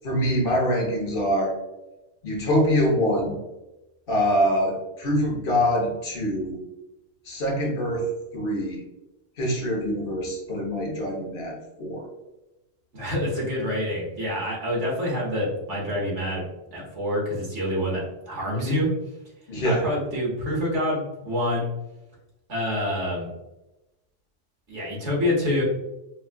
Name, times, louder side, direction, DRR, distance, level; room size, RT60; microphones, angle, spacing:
voice 1, 0.0-1.5 2.2-3.4 4.1-6.6 7.2-8.8 9.4-12.1 19.5-19.9, equal, 50° left, -1 dB, 1.1 m, -24 dB
voice 2, 12.9-16.4 16.7-18.9 19.6-21.7 22.5-23.3 24.7-25.6, left 1 dB, 65° right, -4 dB, 1.5 m, -27 dB
5.4 x 2.3 x 2.2 m, 0.98 s
omnidirectional pair, 1.3 m